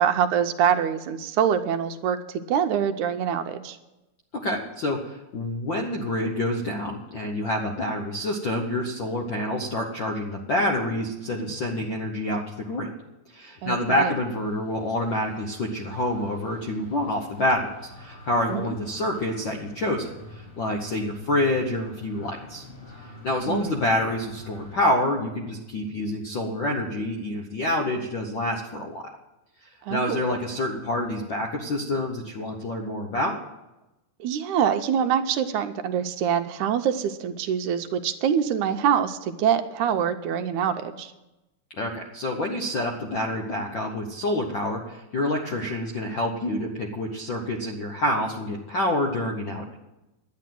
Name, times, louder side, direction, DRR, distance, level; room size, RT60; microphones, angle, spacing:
voice 1, 0.0-3.8 13.6-14.1 18.5-18.8 23.5-23.7 29.8-30.3 34.2-41.1, right 8 dB, 80° right, 8 dB, 2.0 m, -25 dB
voice 2, 4.3-12.9 13.3-17.7 18.0-20.1 20.6-22.6 23.2-29.1 29.9-33.4 41.8-49.8, left 1 dB, 65° left, 1 dB, 1.1 m, -27 dB
sound 1, 14.2-24.8, left 1 dB, 10° left, 6.2 m, -47 dB
11.5 x 9.5 x 7.6 m, 0.99 s
omnidirectional pair, 3.6 m